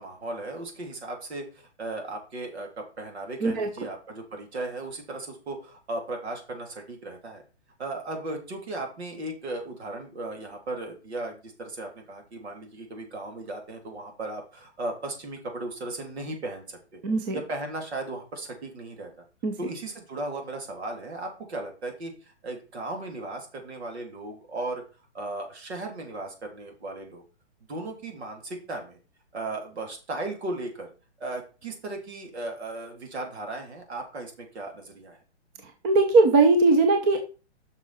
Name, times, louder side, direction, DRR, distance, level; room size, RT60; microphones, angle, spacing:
voice 1, 0.0-7.4 7.8-17.0 17.3-19.1 19.6-24.8 25.1-27.2 27.7-29.0 29.3-30.9 31.2-35.2, right 2 dB, 65° right, 3 dB, 3.3 m, -36 dB
voice 2, 17.0-17.3 19.4-19.5 35.8-37.2, right 3 dB, 20° right, 5 dB, 0.7 m, -19 dB
7.4 x 6.1 x 4.3 m, 0.33 s
hypercardioid pair, 155°, 34 cm